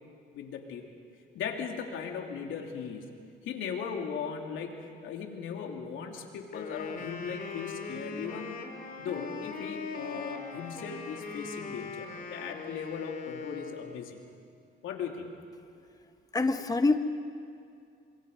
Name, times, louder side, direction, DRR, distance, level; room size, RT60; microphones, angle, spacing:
voice 1, 0.3-0.9 1.3-3.0 3.4-8.6 9.0-14.2 14.8-15.3, left 6 dB, 80° left, 2 dB, 3.0 m, -38 dB
Wind instrument woodwind instrument, 6.5-14.1, left 5 dB, 45° left, 2.9 m, -40 dB
voice 2, 16.3-17.0, left 3 dB, 20° left, 8 dB, 1.1 m, -25 dB
28.0 x 25.5 x 5.5 m, 2.5 s
cardioid pair, 90°, 20 cm